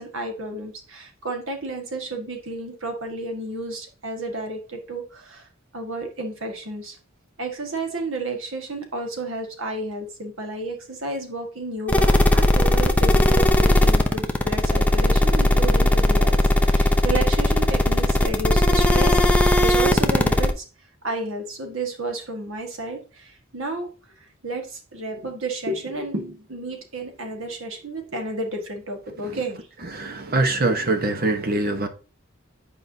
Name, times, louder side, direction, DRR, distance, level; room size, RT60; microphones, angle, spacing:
voice 1, 0.0-5.5 5.7-7.0 7.4-20.6 21.0-23.9 24.4-29.7, right 2 dB, 65° right, 1.6 m, -31 dB
sound 1, 11.9-20.5, left 1 dB, 5° left, 0.6 m, -18 dB
voice 2, 29.9-31.9, right 2 dB, 45° right, 1.0 m, -23 dB
9.4 x 4.8 x 2.7 m
head